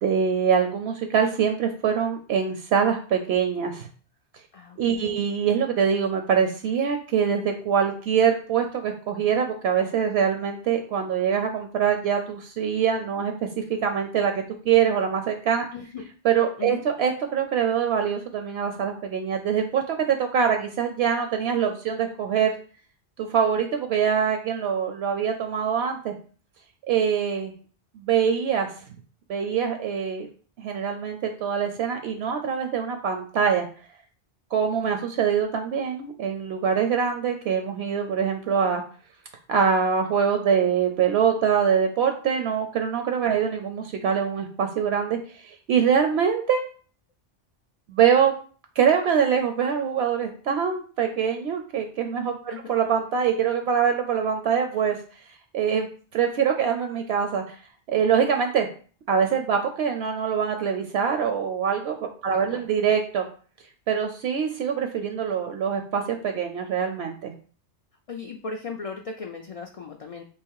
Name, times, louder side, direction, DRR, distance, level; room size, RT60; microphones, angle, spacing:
voice 1, 0.0-3.9 4.8-15.7 16.2-22.6 23.2-26.1 26.9-27.5 27.9-28.7 29.3-30.3 30.6-33.7 34.5-38.8 39.5-46.6 47.9-48.3 48.8-55.0 55.5-55.9 56.1-57.6 57.9-58.7 59.1-63.2 63.9-67.3, right 7 dB, 70° right, 5 dB, 0.8 m, -24 dB
voice 2, 4.5-5.2 15.7-16.1 16.6-16.8 43.3-43.4 52.5-52.6 62.5-62.6 68.1-70.2, left 5 dB, 65° left, 3 dB, 0.3 m, -37 dB
3.5 x 2.8 x 4.6 m, 0.40 s
omnidirectional pair, 1.2 m